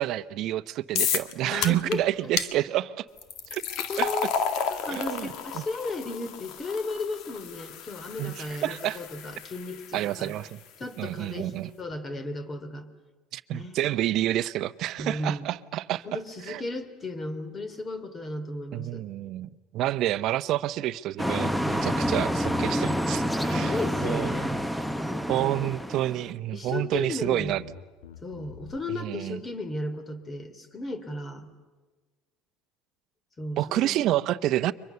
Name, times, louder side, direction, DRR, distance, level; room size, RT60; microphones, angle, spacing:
voice 1, 0.0-3.0 3.5-3.6 4.0-4.1 4.9-5.6 8.2-9.0 9.9-10.6 11.0-11.7 13.3-16.1 16.5-16.6 18.7-24.3 25.3-27.6 29.0-29.4 33.6-34.7, right 14 dB, 55° right, 14 dB, 0.8 m, -29 dB
sound 1, 1.0-1.3 1.6-2.0 2.4-2.5 3.2-10.3, left 7 dB, 65° left, 1.8 m, -32 dB
voice 2, 1.4-2.3 3.9-4.3 4.7-10.3 10.8-11.5 11.8-12.9 13.5-13.9 15.0-15.5 16.0-19.0 23.3-24.6 25.0-25.7 26.5-27.5 28.2-31.5 33.4-33.9, left 2 dB, 25° left, 11 dB, 3.2 m, -35 dB
sound 2, 21.2-26.3, equal, 5° left, 1.0 m, -28 dB
Bass guitar, 21.6-25.2 25.8-26.3 26.7-28.8, left 7 dB, 90° left, 1.6 m, -45 dB
30.0 x 24.0 x 6.9 m, 1.3 s
supercardioid pair, 105°, 0 cm